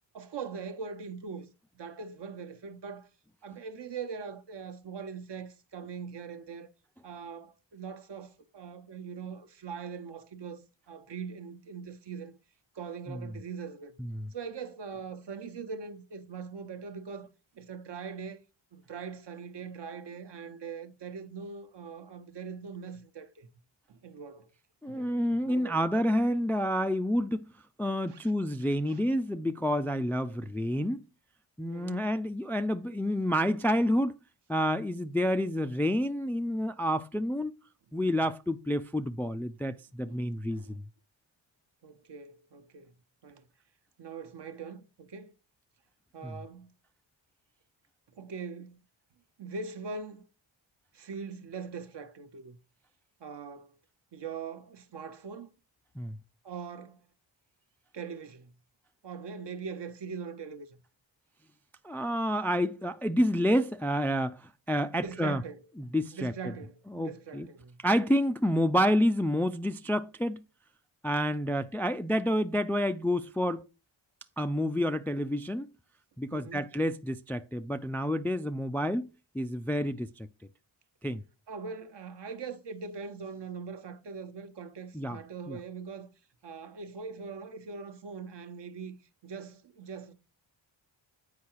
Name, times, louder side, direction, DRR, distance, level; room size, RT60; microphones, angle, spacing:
voice 1, 0.1-1.5 1.7-3.1 3.4-6.7 7.0-12.4 12.7-13.9 14.3-17.3 17.5-18.4 18.7-23.5 23.9-24.5 24.9-25.9 28.1-28.2 28.9-29.0 31.7-32.1 40.0-40.8 41.8-42.9 43.2-43.5 44.0-45.3 46.1-46.7 48.1-48.8 49.4-50.2 50.9-52.6 53.2-53.8 54.1-55.5 56.4-57.0 57.9-58.5 59.0-60.8 64.9-65.7 66.1-67.8 71.3-71.7 76.3-76.7 81.5-86.1 86.4-88.9 89.2-90.1, right 5 dB, 55° right, 1.0 m, -42 dB
voice 2, 24.8-27.5 27.8-31.0 31.6-34.2 34.5-37.5 37.9-40.8 46.2-46.4 56.0-56.2 61.8-65.4 65.8-66.3 66.9-67.5 67.8-70.4 71.0-73.6 74.4-75.7 76.2-79.1 79.3-80.3 81.0-81.2 84.9-85.2 85.5-85.6, equal, 5° left, 0.3 m, -29 dB
8.5 x 4.7 x 4.5 m
cardioid pair, 95°, 48 cm